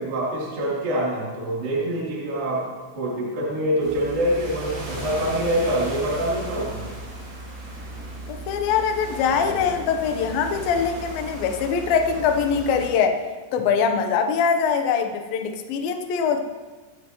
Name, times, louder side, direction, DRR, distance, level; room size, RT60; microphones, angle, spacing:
voice 1, 0.0-2.7 2.9-6.8, right 1 dB, 45° right, -6 dB, 4.9 m, -25 dB
sound 1, 3.8-12.9, right 1 dB, 80° right, 9.4 m, -35 dB
voice 2, 8.3-13.2 13.5-16.4, left 6 dB, 85° left, 5 dB, 2.0 m, -23 dB
25.0 x 14.0 x 3.1 m, 1.3 s
omnidirectional pair, 5.9 m